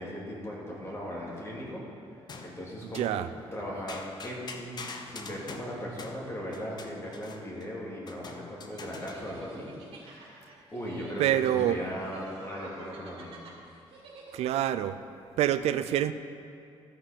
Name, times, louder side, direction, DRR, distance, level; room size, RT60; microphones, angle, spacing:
voice 1, 0.0-1.8 2.4-3.1 3.5-4.7 5.1-9.7 10.0-13.4, equal, 25° left, -4 dB, 2.5 m, -38 dB
sound 1, 1.3-1.8 2.3-3.2 3.9-7.7 8.1-9.4, left 4 dB, 40° left, 0.8 m, -45 dB
voice 2, 2.9-3.3 11.2-11.8 14.3-15.0 15.4-16.1, right 12 dB, 85° right, 12 dB, 0.4 m, -26 dB
sound 2, 8.7-14.7, right 3 dB, 65° right, 2.2 m, -50 dB
13.5 x 5.6 x 5.0 m, 2.4 s
cardioid pair, 115°, 10 cm